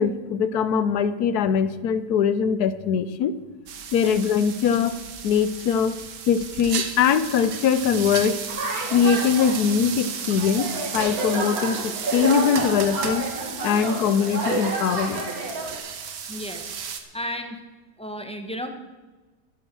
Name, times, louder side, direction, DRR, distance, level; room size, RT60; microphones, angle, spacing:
voice 1, 0.0-3.3 3.9-6.0 6.3-8.4 8.9-10.7 10.9-13.3 13.6-15.3, left 7 dB, 70° left, 14 dB, 1.2 m, -22 dB
sound 1, 3.7-17.0, right 7 dB, 80° right, 1.8 m, -34 dB
sound 2, 8.5-15.8, right 2 dB, 60° right, 2.4 m, -30 dB
voice 2, 16.3-16.7 17.1-17.6 18.0-18.7, equal, 5° left, 6 dB, 1.0 m, -33 dB
12.0 x 11.0 x 6.1 m, 1.2 s
omnidirectional pair, 1.8 m